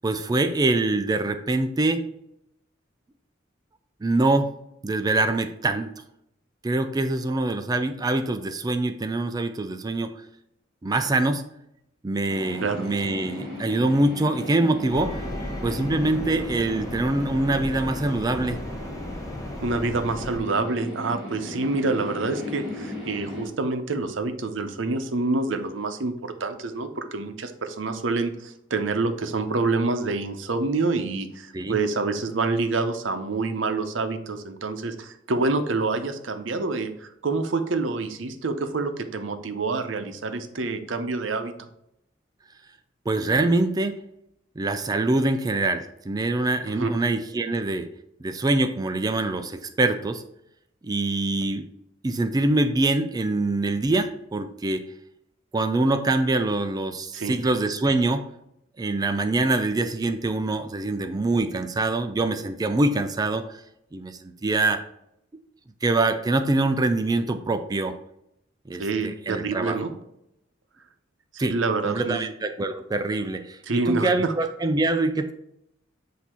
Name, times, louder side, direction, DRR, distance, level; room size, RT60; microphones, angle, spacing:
voice 1, 0.0-2.1 4.0-4.6 4.8-5.9 6.6-10.1 10.8-11.4 12.0-15.2 15.6-18.6 31.5-31.8 43.1-44.0 44.6-47.9 48.2-50.2 50.8-51.7 52.0-54.9 55.5-58.3 58.8-63.6 63.9-64.8 65.8-68.0 68.7-69.8 71.4-71.5 71.8-75.3, right 2 dB, 20° right, 9 dB, 0.3 m, -24 dB
sound 1, 12.3-23.5, left 1 dB, 5° right, 2.2 m, -37 dB
sound 2, 14.9-20.4, left 1 dB, 20° left, 0.7 m, -35 dB
voice 2, 19.6-41.5 46.6-46.9 57.1-57.4 68.8-69.9 71.5-72.2 73.7-74.3, right 3 dB, 85° right, 7 dB, 0.7 m, -27 dB
8.0 x 2.8 x 4.3 m, 0.80 s
head